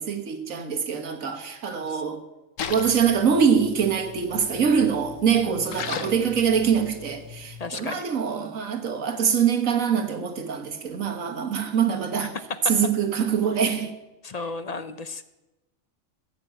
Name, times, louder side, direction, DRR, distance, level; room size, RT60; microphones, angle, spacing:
voice 1, 0.0-2.2 2.7-12.4 12.6-13.9, right 7 dB, 85° right, 1.7 m, -24 dB
Splash splatter, 2.6-7.7, left 7 dB, 80° left, 1.3 m, -38 dB
voice 2, 7.6-8.1 14.2-15.2, left 4 dB, 40° left, 0.6 m, -34 dB
16.0 x 6.9 x 8.8 m
omnidirectional pair, 1.4 m